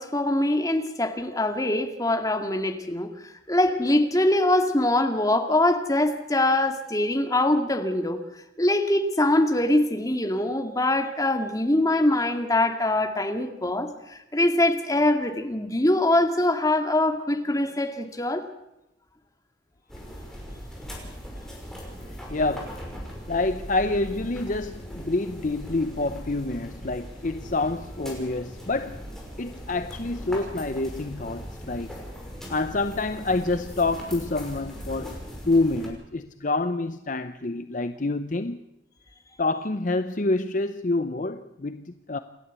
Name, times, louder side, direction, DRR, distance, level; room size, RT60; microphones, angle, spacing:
voice 1, 0.0-3.1 3.5-8.2 8.6-18.4, left 1 dB, 20° left, 2.1 m, -23 dB
sound 1, 19.9-35.9, equal, 5° left, 5.6 m, -39 dB
voice 2, 22.3-22.8 23.3-29.0 29.4-32.0 32.5-35.2 35.5-38.6 39.4-42.2, left 2 dB, 45° left, 0.7 m, -27 dB
28.5 x 12.0 x 8.3 m
head